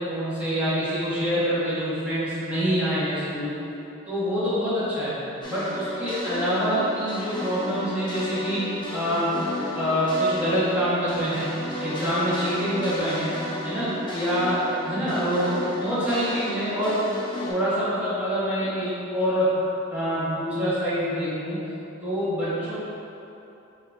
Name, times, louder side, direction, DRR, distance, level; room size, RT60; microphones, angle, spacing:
voice 1, 0.0-3.5 4.1-5.1 5.5-9.4 9.7-13.3 13.6-17.0 17.5-19.6 19.9-21.6 22.0-22.8, equal, 5° right, -12 dB, 1.2 m, -26 dB
sound 1, 5.4-17.5, left 1 dB, 20° left, 0.5 m, -34 dB
3.7 x 2.9 x 4.5 m, 2.9 s
head